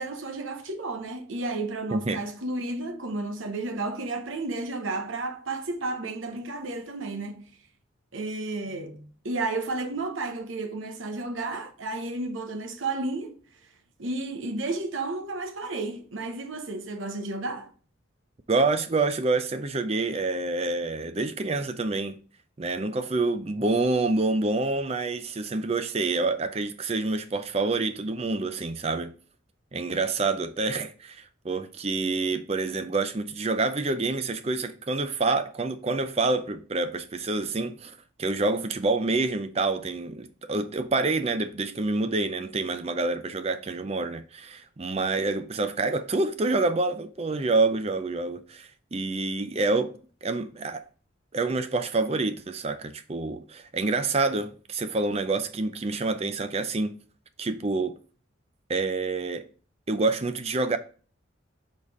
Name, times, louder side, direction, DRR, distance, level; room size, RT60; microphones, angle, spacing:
voice 1, 0.0-7.5 8.1-13.4 14.0-17.7, right 2 dB, 85° right, 1.0 m, -32 dB
voice 2, 18.5-22.2 22.6-29.1 29.7-50.8 51.3-57.0 57.4-57.9 58.7-59.5 59.9-60.8, right 3 dB, 30° right, 0.5 m, -27 dB
5.3 x 4.1 x 4.8 m
head